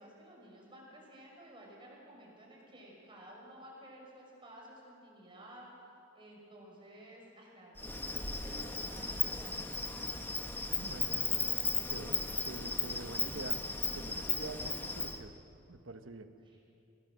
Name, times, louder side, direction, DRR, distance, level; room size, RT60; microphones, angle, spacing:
voice 1, 0.0-5.7 6.1-10.0 16.4-16.6, right 1 dB, 25° right, -2 dB, 5.9 m, -54 dB
Insect, 7.8-15.2, left 3 dB, 10° left, 1.3 m, -35 dB
voice 2, 10.8-13.6 13.9-15.4 15.7-16.3, right 2 dB, 80° right, 8 dB, 1.2 m, -46 dB
24.0 x 17.5 x 7.6 m, 2.7 s
head